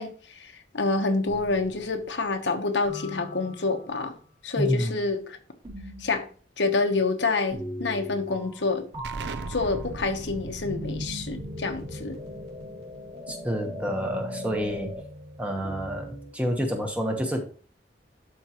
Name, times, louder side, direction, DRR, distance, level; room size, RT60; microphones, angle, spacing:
voice 1, 0.0-4.1 4.4-5.4 6.0-6.3 6.6-8.9 9.5-12.2, left 3 dB, 85° left, 1.1 m, -27 dB
sound 1, 1.3-2.1 2.8-3.9 5.6-6.2 7.5-8.7 8.9-16.3, equal, 30° right, 2.5 m, -39 dB
voice 2, 4.6-5.0 13.3-14.9 15.4-17.4, equal, 10° right, 1.1 m, -28 dB
Explosion, 9.0-14.4, right 2 dB, 75° right, 0.6 m, -40 dB
11.5 x 4.6 x 3.0 m
head